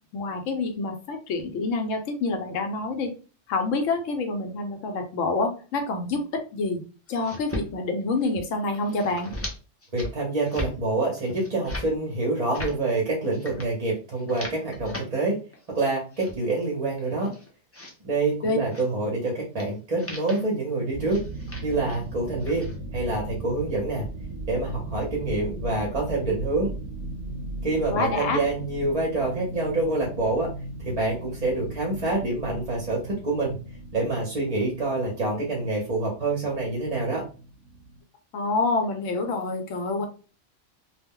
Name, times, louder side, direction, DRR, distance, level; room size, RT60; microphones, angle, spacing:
voice 1, 0.1-3.1 3.5-6.2 6.5-6.8 7.1-9.3 18.4-18.6 27.9-28.4 38.3-40.1, left 3 dB, 85° left, 5 dB, 1.0 m, -27 dB
sound 1, 7.1-7.7 8.0-8.4 8.7-9.5 9.8-10.1 10.4-10.7 11.2-11.9 12.3-12.8 13.3-13.7 14.1-15.0 15.5-16.3 16.9-17.9 18.7-18.9 19.6-19.7 20.0-20.4 21.1-22.0 22.3-22.8, left 1 dB, 20° left, 0.3 m, -38 dB
voice 2, 9.9-15.4 15.7-17.3 18.0-21.2 21.6-24.1 24.5-26.7 27.6-30.5 30.8-33.6 33.9-37.2, right 2 dB, 35° right, -2 dB, 0.7 m, -26 dB
sound 2, 20.9-38.0, right 1 dB, 85° right, 0.9 m, -38 dB
2.3 x 2.1 x 3.5 m, 0.36 s
omnidirectional pair, 1.3 m